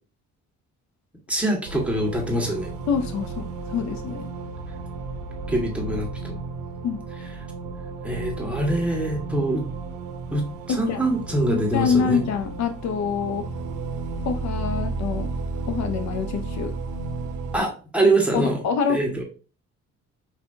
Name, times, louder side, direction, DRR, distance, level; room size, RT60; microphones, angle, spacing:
voice 1, 1.3-2.7 5.5-6.4 8.0-9.7 10.3-12.2 17.5-18.6 18.9-19.2, right 1 dB, 5° right, 0 dB, 1.3 m, -24 dB
sound 1, 1.6-17.6, right 3 dB, 90° right, 0.6 m, -33 dB
voice 2, 2.9-4.3 6.8-7.0 10.7-11.0 11.7-13.5 14.2-15.3 15.7-16.7 18.3-19.0, left 6 dB, 65° left, 8 dB, 0.5 m, -26 dB
4.6 x 2.7 x 2.6 m, 0.36 s
cardioid pair, 90°, 30 cm